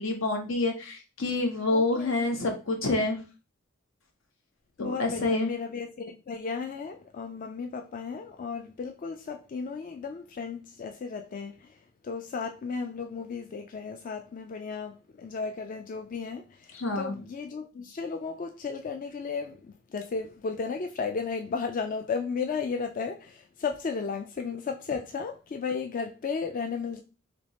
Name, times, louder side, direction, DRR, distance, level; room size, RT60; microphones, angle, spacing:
voice 1, 0.0-3.2 4.8-5.5 16.7-17.2, left 2 dB, 85° left, 1.1 m, -27 dB
voice 2, 1.7-2.1 4.8-11.8 12.0-27.0, left 5 dB, 45° left, 0.4 m, -34 dB
3.4 x 3.0 x 4.1 m
head